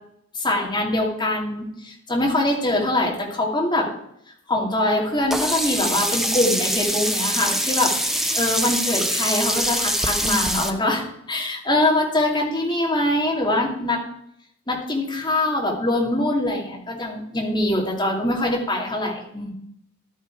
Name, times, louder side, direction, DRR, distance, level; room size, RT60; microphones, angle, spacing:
voice 1, 0.3-3.9 4.5-14.0 14.7-19.5, left 1 dB, 20° left, -1 dB, 2.4 m, -23 dB
Sink (filling or washing), 5.3-10.7, equal, ahead, 0.8 m, -24 dB
11.5 x 9.0 x 4.7 m, 0.74 s
head